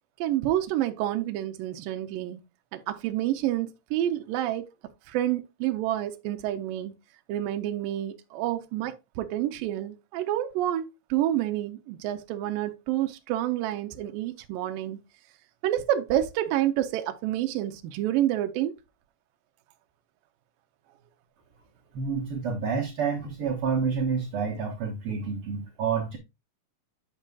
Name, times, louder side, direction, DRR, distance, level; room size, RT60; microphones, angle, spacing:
voice 1, 0.2-2.4 2.7-4.7 5.1-6.9 7.3-15.0 15.6-18.8, right 12 dB, 80° right, 2.3 m, -28 dB
voice 2, 21.9-26.2, right 5 dB, 60° right, 1.5 m, -29 dB
8.8 x 6.5 x 2.3 m
omnidirectional pair, 4.2 m